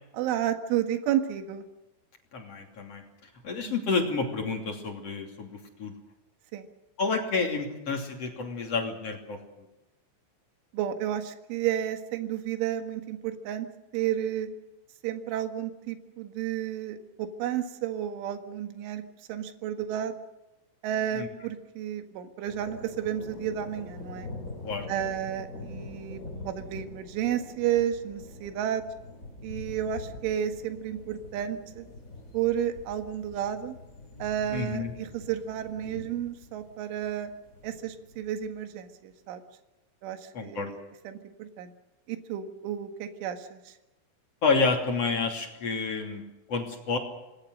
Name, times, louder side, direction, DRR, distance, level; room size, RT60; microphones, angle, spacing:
voice 1, 0.2-1.6 3.7-3.8 6.5-6.7 10.7-13.7 13.9-14.5 15.0-19.0 19.3-20.2 20.8-24.3 24.9-28.8 29.4-31.9 32.3-33.8 34.2-37.3 37.6-39.4 40.0-40.8 41.1-41.7 42.1-43.8, right 10 dB, 75° right, 7 dB, 4.0 m, -32 dB
voice 2, 2.3-3.1 3.4-5.9 7.0-9.4 21.1-21.3 24.6-24.9 34.5-34.9 40.3-40.7 44.4-46.2 46.5-47.0, left 4 dB, 35° left, 2 dB, 3.2 m, -29 dB
sound 1, 22.5-38.5, left 2 dB, 20° left, 3.5 m, -44 dB
26.5 x 20.0 x 6.5 m, 1.0 s
omnidirectional pair, 5.8 m